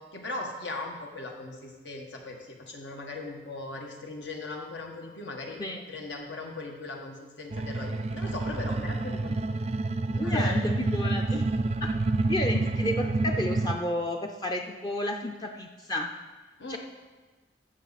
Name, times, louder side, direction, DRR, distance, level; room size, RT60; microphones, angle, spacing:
voice 1, 0.1-5.6 5.9-9.7 10.0-10.6 16.6-16.8, left 2 dB, 85° left, 1 dB, 1.6 m, -38 dB
sound 1, 7.5-13.8, right 2 dB, 35° right, 0.4 m, -28 dB
voice 2, 10.2-11.4 11.8-11.9 12.3-16.1 16.7-16.8, left 1 dB, 25° left, 2 dB, 0.5 m, -31 dB
14.5 x 6.6 x 4.1 m, 1.3 s
head